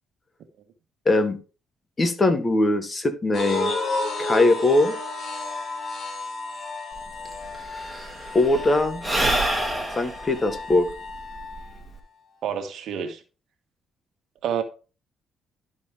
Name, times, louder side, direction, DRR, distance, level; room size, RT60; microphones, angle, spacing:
voice 1, 1.0-1.4 2.0-3.7 4.2-4.9 8.3-9.0 9.9-10.9, left 2 dB, 30° left, 1.4 m, -21 dB
sound 1, 3.3-11.7, left 2 dB, 55° left, 3.5 m, -32 dB
Sigh / Breathing, 7.0-7.1 7.3-12.0, right 1 dB, 5° right, 2.2 m, -28 dB
voice 2, 12.4-13.2 14.4-14.6, right 8 dB, 75° right, 1.3 m, -28 dB
12.0 x 4.5 x 3.5 m
cardioid pair, 90°, 0 cm